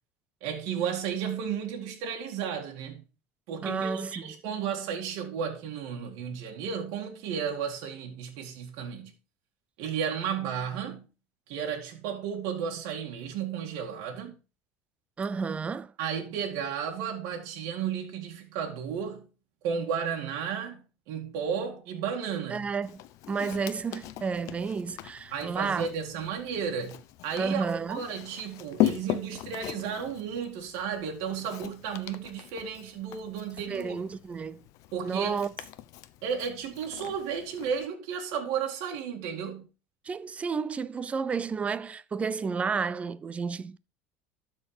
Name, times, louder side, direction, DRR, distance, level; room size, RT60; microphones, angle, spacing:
voice 1, 0.4-3.0 3.5-9.1 9.8-11.0 11.5-14.3 16.0-19.3 19.6-20.8 21.1-22.7 25.3-34.0 34.9-35.4 36.2-39.7, right 7 dB, 65° right, 2.1 m, -33 dB
voice 2, 3.6-4.3 15.2-15.9 22.5-23.0 23.3-25.9 27.4-28.1 33.7-34.6 35.0-35.5 40.0-43.8, right 5 dB, 20° right, 0.5 m, -31 dB
Walk footsteps, 22.8-37.9, left 13 dB, 60° left, 0.8 m, -38 dB
12.5 x 4.5 x 4.8 m
supercardioid pair, 135°, 6 cm